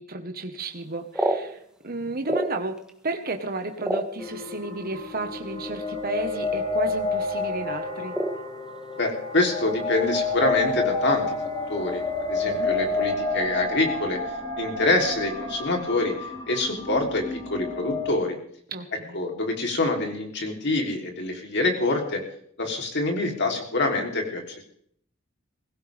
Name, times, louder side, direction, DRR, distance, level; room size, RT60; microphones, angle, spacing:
voice 1, 0.0-2.8 3.0-8.2 12.4-12.8 18.7-19.2, right 3 dB, 45° right, 4 dB, 1.4 m, -33 dB
sound 1, 0.8-2.9 3.3-4.7 5.5-5.6 5.9-6.2 6.5-6.9 7.2-7.4 8.1-9.1 9.4-10.3 10.5-10.6 11.0-11.3 11.8-12.2, right 1 dB, 5° right, 1.5 m, -30 dB
sound 2, 4.2-18.1, left 3 dB, 20° left, 3.7 m, -30 dB
voice 2, 9.0-11.4 11.7-12.0 12.3-14.2 14.6-18.4 19.1-22.2 22.6-24.6, left 2 dB, 55° left, 2 dB, 3.5 m, -26 dB
22.0 x 16.0 x 3.6 m, 0.64 s
head